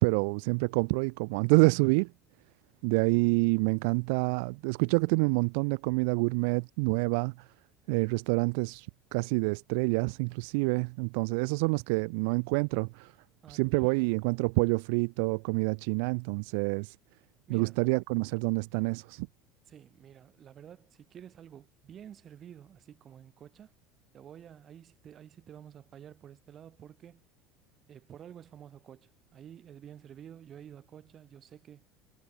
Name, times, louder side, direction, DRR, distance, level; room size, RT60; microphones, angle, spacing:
voice 1, 0.0-2.1 2.8-7.3 7.9-8.9 9.1-13.1 13.5-16.9 17.5-19.3, right 33 dB, 75° right, 0.6 m, -27 dB
voice 2, 13.4-14.0 17.5-17.8 19.7-23.7 24.1-27.2 27.9-31.8, right 9 dB, 30° right, 6.9 m, -50 dB
cardioid pair, 165°, 0 cm